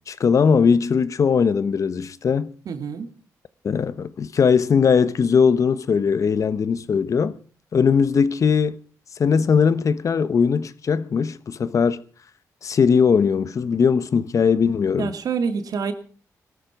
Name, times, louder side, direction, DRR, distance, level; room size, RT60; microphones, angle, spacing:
voice 1, 0.1-2.5 3.6-7.4 7.7-8.8 9.2-12.0 12.6-15.1, left 6 dB, 55° left, 1.0 m, -19 dB
voice 2, 2.7-3.1 15.0-15.9, right 5 dB, 70° right, 2.5 m, -26 dB
18.0 x 13.5 x 6.0 m
cardioid pair, 80°, 7 cm